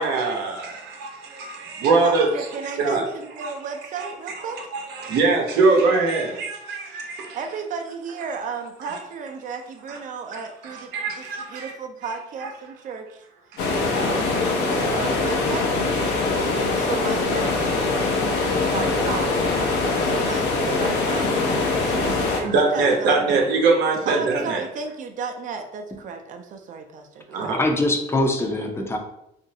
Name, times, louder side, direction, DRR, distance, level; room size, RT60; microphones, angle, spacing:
voice 1, 0.0-2.3 2.6-3.0 3.4-3.5 4.0-4.1 4.7-7.4 9.9-10.0 10.3-11.7 12.4-12.5 13.5-13.6 13.9-14.0 18.0-18.7 19.7-20.0 22.4-24.6 27.3-27.6, right 3 dB, 80° right, 1 dB, 0.8 m, -23 dB
voice 2, 2.0-4.6 7.3-11.2 11.5-13.2 13.9-14.3 14.6-15.7 16.4-17.5 18.7-19.4 19.9-21.3 21.9-23.4 24.1-27.6, right 5 dB, 50° right, 5 dB, 0.5 m, -34 dB
sound 1, 13.6-22.4, left 3 dB, 85° left, 0.6 m, -23 dB
voice 3, 27.5-29.0, left 1 dB, 15° left, 3 dB, 0.5 m, -23 dB
2.9 x 2.5 x 2.7 m, 0.81 s
cardioid pair, 110°, 17 cm